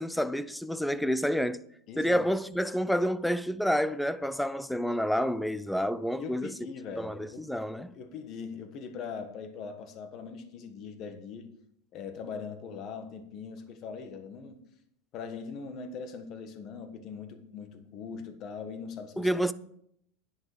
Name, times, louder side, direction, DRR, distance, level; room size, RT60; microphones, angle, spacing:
voice 1, 0.0-1.6 2.0-6.5 7.0-7.9 19.2-19.5, equal, ahead, 0.4 m, -29 dB
voice 2, 1.9-2.3 6.2-7.5 7.8-11.5 11.9-14.6 15.1-19.3, left 5 dB, 35° left, 1.4 m, -41 dB
10.5 x 9.6 x 5.0 m
supercardioid pair, 150°, 0 cm